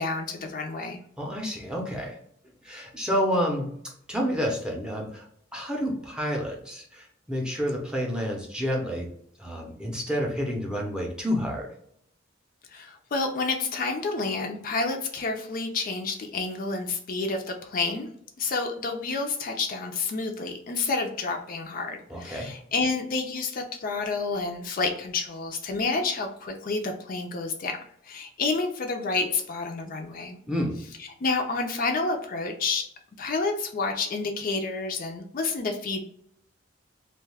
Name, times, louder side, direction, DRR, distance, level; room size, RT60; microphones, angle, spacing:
voice 1, 0.0-1.0 12.7-18.1 18.4-27.8 28.0-30.4 31.0-32.9 33.2-36.0, left 3 dB, 45° left, 4 dB, 0.4 m, -29 dB
voice 2, 1.2-2.2 2.6-3.7 4.1-5.2 5.5-9.1 9.4-11.7 22.1-22.5 30.5-30.8, equal, 5° right, -2 dB, 0.6 m, -29 dB
2.5 x 2.2 x 3.3 m, 0.68 s
head